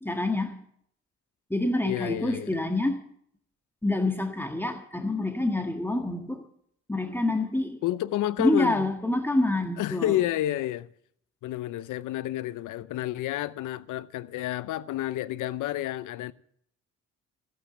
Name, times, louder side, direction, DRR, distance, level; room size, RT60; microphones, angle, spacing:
voice 1, 0.0-0.5 1.5-3.0 3.8-6.4 6.9-7.8 8.4-10.2, left 2 dB, 5° left, 1.6 m, -27 dB
voice 2, 1.8-2.7 7.8-8.9 9.8-10.9 11.4-16.3, left 14 dB, 85° left, 0.8 m, -30 dB
16.0 x 8.9 x 7.0 m
cardioid pair, 90°, 30 cm